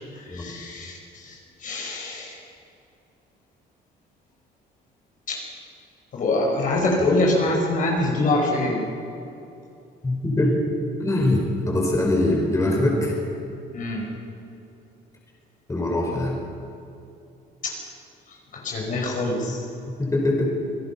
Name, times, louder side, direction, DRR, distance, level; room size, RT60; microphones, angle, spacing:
voice 1, 0.1-2.4 5.3-5.4 6.1-8.8 13.7-14.1 17.6-17.7 18.3-19.6, left 2 dB, 50° left, 0 dB, 5.2 m, -25 dB
voice 2, 10.0-10.7 11.0-13.2 15.7-16.4 19.4-19.5 19.9-20.5, left 1 dB, 20° left, -1 dB, 5.3 m, -22 dB
28.0 x 17.5 x 5.9 m, 2.7 s
cardioid pair, 110°, 17 cm